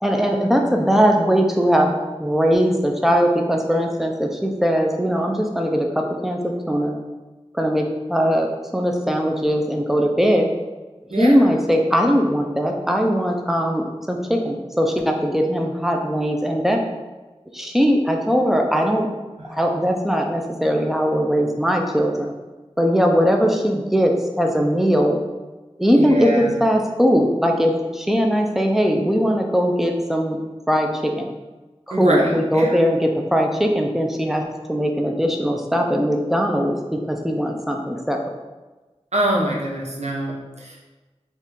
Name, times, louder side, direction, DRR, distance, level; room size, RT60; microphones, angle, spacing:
voice 1, 0.0-1.9 2.2-7.0 7.5-10.5 11.1-16.8 17.5-19.1 19.5-22.3 22.8-25.2 25.8-30.4 30.7-31.3 31.9-34.4 34.7-38.2, equal, 5° right, 2 dB, 0.5 m, -20 dB
voice 2, 11.1-11.4 26.0-26.5 31.9-32.8 39.1-40.8, right 1 dB, 85° right, -3 dB, 0.8 m, -24 dB
4.1 x 2.4 x 3.7 m, 1.2 s
wide cardioid pair, 45°, 11 cm